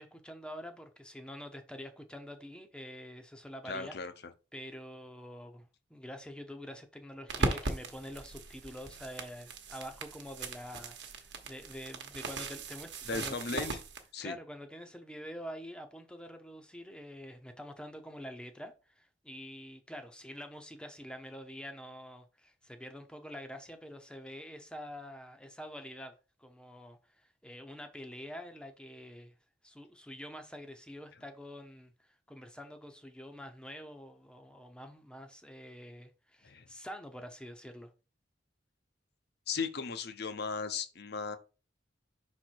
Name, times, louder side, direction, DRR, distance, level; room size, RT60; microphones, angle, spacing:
voice 1, 0.0-3.9 4.5-13.8 14.2-26.1 26.4-29.3 29.6-37.9, equal, 5° left, 0.7 m, -46 dB
voice 2, 3.6-4.1 13.1-13.8 14.1-14.4 36.4-36.7 39.5-41.4, left 4 dB, 55° left, 0.8 m, -36 dB
sound 1, 7.3-14.0, right 3 dB, 60° right, 1.1 m, -38 dB
5.7 x 4.3 x 4.6 m
head